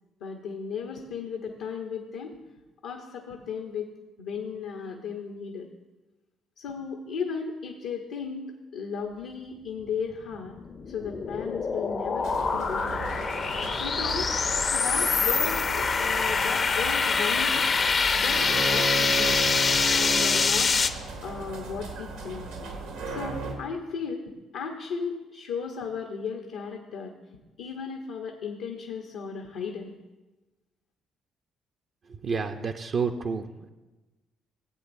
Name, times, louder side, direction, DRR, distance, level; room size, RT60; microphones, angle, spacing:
voice 1, 0.2-2.3 2.8-3.9 4.2-5.7 6.6-10.5 10.9-12.9 13.8-14.3 14.7-17.7 18.1-19.4 19.9-20.7 21.2-22.5 23.1-24.2 24.5-27.1 27.6-29.9, left 6 dB, 75° left, 2 dB, 0.8 m, -35 dB
sound 1, 10.3-20.9, left 5 dB, 45° left, 0.6 m, -25 dB
sound 2, 12.2-23.6, right 3 dB, 85° right, 1.5 m, -35 dB
voice 2, 32.1-33.7, right 5 dB, 55° right, 4 dB, 0.6 m, -30 dB
15.5 x 8.0 x 2.6 m, 1.1 s
hypercardioid pair, 50°, 0 cm